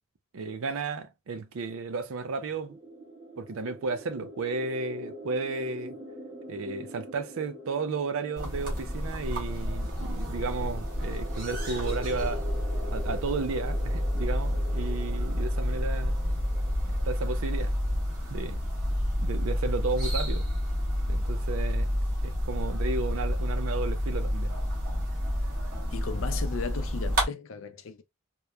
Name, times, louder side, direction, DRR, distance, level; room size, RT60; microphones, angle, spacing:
voice 1, 0.3-2.8 3.4-6.0 6.5-12.5 12.9-16.2 16.9-17.7 18.3-18.6 19.2-20.5 21.1-22.0 22.2-24.5, right 4 dB, 75° right, 0.4 m, -33 dB
sound 1, 2.3-17.9, equal, 20° right, 1.1 m, -45 dB
sound 2, 8.4-27.3, equal, 45° right, 1.1 m, -29 dB
voice 2, 25.9-28.0, left 5 dB, 70° left, 0.4 m, -36 dB
2.9 x 2.1 x 2.2 m
head